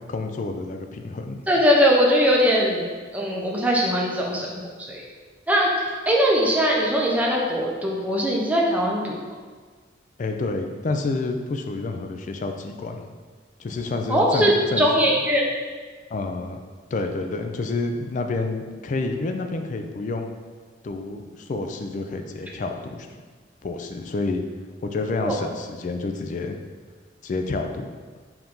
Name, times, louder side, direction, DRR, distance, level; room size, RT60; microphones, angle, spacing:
voice 1, 0.1-1.4 10.2-13.0 13.6-14.9 16.1-16.6 16.9-20.3 20.8-23.1 23.6-24.4 24.8-26.6 27.2-27.8, left 3 dB, 40° left, 5 dB, 0.3 m, -29 dB
voice 2, 1.5-2.8 3.1-4.5 4.9-5.0 5.5-9.2 14.1-14.5 14.8-15.4 25.2-25.4, equal, 10° right, -3 dB, 0.5 m, -20 dB
4.7 x 2.6 x 3.6 m, 1.5 s
head